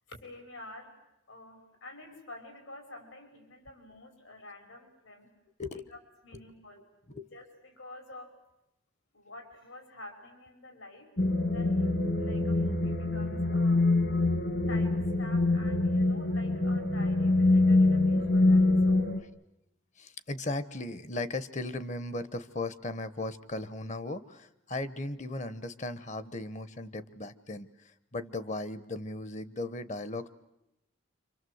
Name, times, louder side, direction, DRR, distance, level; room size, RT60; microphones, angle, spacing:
voice 1, 0.1-0.9 1.3-5.3 5.7-6.0 6.2-6.8 7.3-8.3 9.1-11.1 11.5-13.8 14.7-19.1, left 2 dB, 80° left, 6 dB, 5.7 m, -49 dB
sound 1, 11.2-19.2, left 2 dB, 50° left, 1.7 m, -25 dB
voice 2, 20.0-30.3, left 2 dB, 35° left, 15 dB, 1.0 m, -37 dB
27.5 x 25.0 x 7.9 m, 0.88 s
head